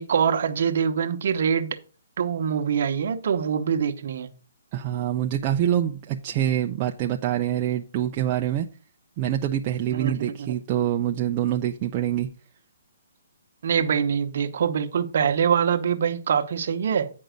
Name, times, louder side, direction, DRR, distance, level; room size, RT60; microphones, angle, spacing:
voice 1, 0.0-1.8 2.2-4.3 9.9-10.5 13.6-17.1, right 7 dB, 40° right, 0.9 m, -24 dB
voice 2, 4.7-8.7 9.2-12.3, right 11 dB, 20° right, 0.4 m, -25 dB
9.2 x 5.3 x 5.1 m
hypercardioid pair, 180°, 0 cm